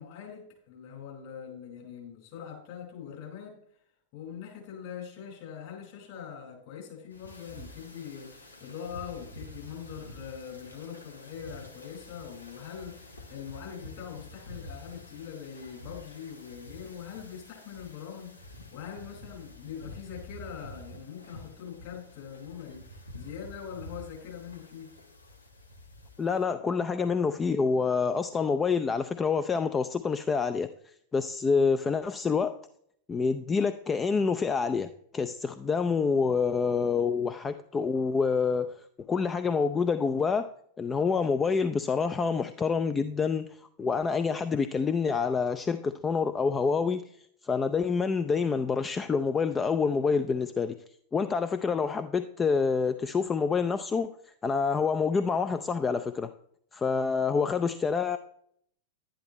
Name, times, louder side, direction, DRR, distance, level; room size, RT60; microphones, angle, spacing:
voice 1, 0.0-3.5 4.1-18.3 18.7-24.9, left 8 dB, 50° left, 0 dB, 4.8 m, -42 dB
sound 1, 7.1-26.4, left 1 dB, 80° left, 1.2 m, -48 dB
voice 2, 26.2-30.7 31.1-32.6 33.1-38.8 39.1-40.5 40.8-43.5 43.8-47.0 47.4-50.8 51.1-54.1 54.4-56.3 56.7-58.2, left 5 dB, 20° left, 10 dB, 0.4 m, -27 dB
11.5 x 10.0 x 3.1 m, 0.67 s
figure-of-eight pair, 90°, 0 cm